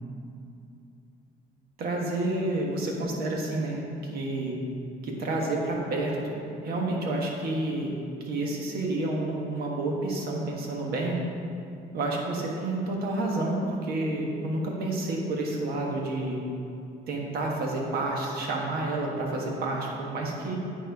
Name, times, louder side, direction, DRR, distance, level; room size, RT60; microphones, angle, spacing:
voice 1, 1.8-4.6 5.0-6.3 6.6-7.9 8.2-11.2 11.9-16.4 17.1-20.6, right 2 dB, 65° right, -1 dB, 1.5 m, -29 dB
9.2 x 4.4 x 4.8 m, 2.6 s
cardioid pair, 110°, 17 cm